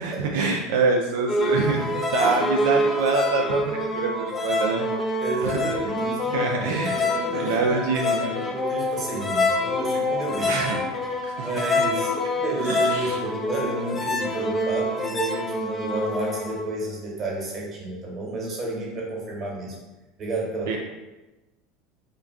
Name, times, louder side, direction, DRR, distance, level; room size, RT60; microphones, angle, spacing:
voice 1, 0.0-4.9 5.4-5.6 6.3-7.0 7.3-8.3 10.4-10.8 11.2-11.5 12.6-13.2 20.7-20.8, right 4 dB, 85° right, 1 dB, 0.3 m, -25 dB
sound 1, 1.3-16.7, left 2 dB, 20° left, 0.4 m, -26 dB
voice 2, 5.2-10.6 11.4-19.8 20.2-20.8, right 2 dB, 35° right, -3 dB, 1.0 m, -31 dB
2.4 x 2.2 x 3.5 m, 1.1 s
supercardioid pair, 120°, 0 cm